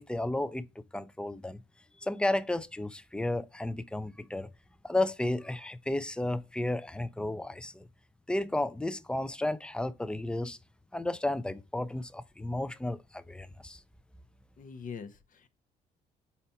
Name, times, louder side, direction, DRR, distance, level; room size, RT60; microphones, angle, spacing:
voice 1, 0.0-1.6 2.0-4.5 4.8-7.9 8.3-10.6 10.9-13.8, left 1 dB, 5° left, 0.5 m, -33 dB
voice 2, 14.6-15.5, left 6 dB, 50° left, 0.8 m, -43 dB
4.4 x 4.1 x 5.6 m
supercardioid pair, 60°, 18 cm